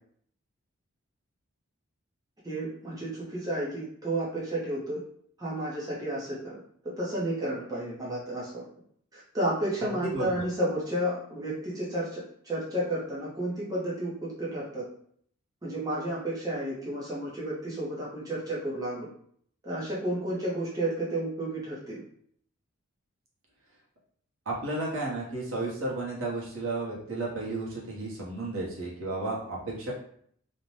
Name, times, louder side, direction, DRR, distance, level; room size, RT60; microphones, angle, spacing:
voice 1, 2.4-5.0 5.4-8.6 9.1-14.8 15.6-19.1 19.6-22.0, right 1 dB, 15° right, -7 dB, 0.5 m, -32 dB
voice 2, 10.0-10.3 24.5-29.9, right 2 dB, 70° right, -4 dB, 0.8 m, -33 dB
2.6 x 2.1 x 3.0 m, 0.63 s
head